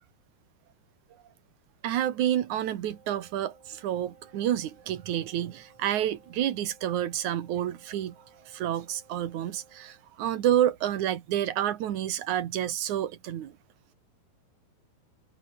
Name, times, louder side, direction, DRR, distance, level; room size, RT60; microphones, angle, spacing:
voice 1, 1.8-8.2 8.5-13.6, right 11 dB, 60° right, 2.4 m, -29 dB
Wind instrument woodwind instrument, 2.8-10.1, right 4 dB, 75° right, 9.8 m, -59 dB
omnidirectional pair, 4.7 m